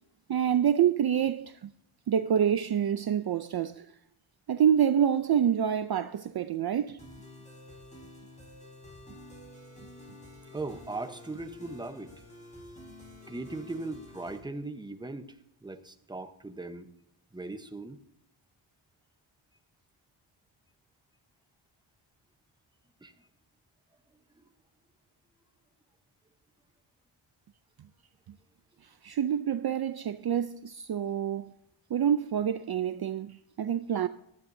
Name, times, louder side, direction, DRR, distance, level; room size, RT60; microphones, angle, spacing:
voice 1, 0.3-1.7 2.1-3.9 4.5-7.0 29.0-31.5 31.9-34.1, right 9 dB, 50° right, 0.5 m, -27 dB
sound 1, 7.0-14.4, left 1 dB, 15° left, 4.4 m, -49 dB
voice 2, 10.5-12.1 13.3-15.3 15.6-16.9 17.3-18.0 23.0-23.1, right 2 dB, 10° right, 0.8 m, -38 dB
17.5 x 12.5 x 2.7 m
wide cardioid pair, 155°, 50 cm